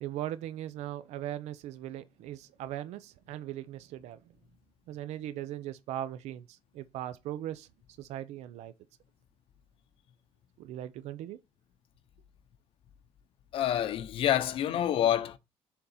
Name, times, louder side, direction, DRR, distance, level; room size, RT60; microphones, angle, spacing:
voice 1, 0.0-4.2 4.9-7.7 8.0-8.7 10.6-11.4, right 12 dB, 85° right, 0.5 m, -39 dB
voice 2, 13.5-15.4, left 11 dB, 55° left, 0.6 m, -27 dB
6.9 x 3.7 x 4.1 m
cardioid pair, 170°, 11 cm